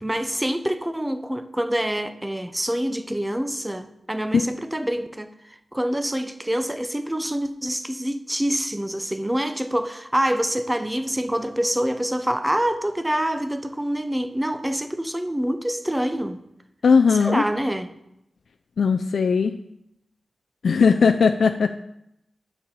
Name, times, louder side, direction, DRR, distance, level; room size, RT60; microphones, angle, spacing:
voice 1, 0.0-5.3 5.7-16.4 17.1-17.9, right 1 dB, 10° right, 0.6 m, -26 dB
voice 2, 16.8-17.4 18.8-19.6 20.6-21.8, left 5 dB, 80° left, 0.3 m, -18 dB
9.2 x 4.2 x 6.9 m
wide cardioid pair, 130°, 0 cm